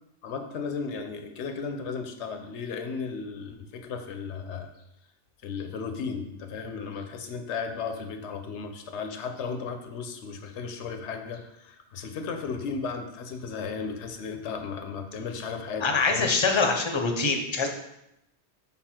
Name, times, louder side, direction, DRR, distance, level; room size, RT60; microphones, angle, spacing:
voice 1, 0.2-4.7 5.4-16.3, left 5 dB, 85° left, 7 dB, 1.0 m, -35 dB
voice 2, 15.8-17.7, left 4 dB, 30° left, 4 dB, 0.6 m, -24 dB
5.5 x 4.2 x 4.3 m, 0.83 s
omnidirectional pair, 1.1 m